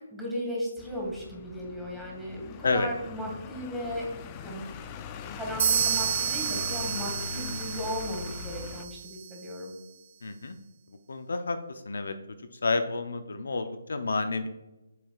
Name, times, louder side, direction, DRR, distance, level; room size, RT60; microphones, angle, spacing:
voice 1, 0.1-4.1 4.4-4.7 5.2-9.7, equal, 5° right, -3 dB, 1.9 m, -36 dB
sound 1, 0.8-8.9, left 6 dB, 25° left, 0.5 m, -41 dB
sound 2, 5.6-9.4, right 8 dB, 45° right, 0.6 m, -30 dB
voice 2, 10.2-10.6 11.1-12.1 12.6-14.5, left 3 dB, 70° left, 9 dB, 0.6 m, -29 dB
8.3 x 6.5 x 2.4 m, 1.0 s
figure-of-eight pair, 150°, 0 cm